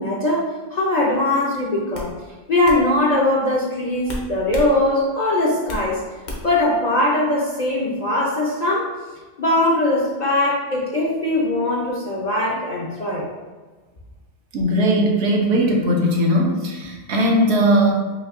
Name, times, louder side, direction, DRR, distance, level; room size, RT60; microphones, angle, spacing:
voice 1, 0.0-2.1 2.5-6.0 6.4-8.9 9.4-13.3, left 1 dB, 50° left, -4 dB, 0.6 m, -21 dB
sound 1, 1.1-1.4 1.9-2.1 2.6-2.8 4.1-4.7 5.1-5.9 6.3-6.6, left 1 dB, 65° left, 1.0 m, -31 dB
voice 2, 14.5-18.0, equal, 70° right, 0 dB, 0.9 m, -18 dB
5.2 x 2.7 x 2.5 m, 1.3 s
omnidirectional pair, 1.2 m